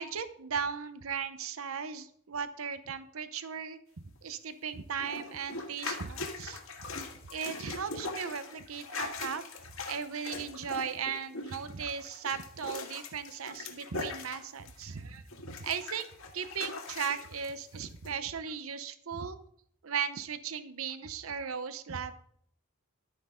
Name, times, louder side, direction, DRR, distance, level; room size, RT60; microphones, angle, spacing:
voice 1, 0.0-3.8 4.2-6.6 7.3-9.4 9.9-19.4 19.8-22.1, right 6 dB, 90° right, 11 dB, 0.8 m, -37 dB
sound 1, 5.0-15.0 15.3-17.5 18.0-18.1, left 3 dB, 80° left, 1.7 m, -41 dB
12.0 x 9.0 x 3.7 m, 0.65 s
head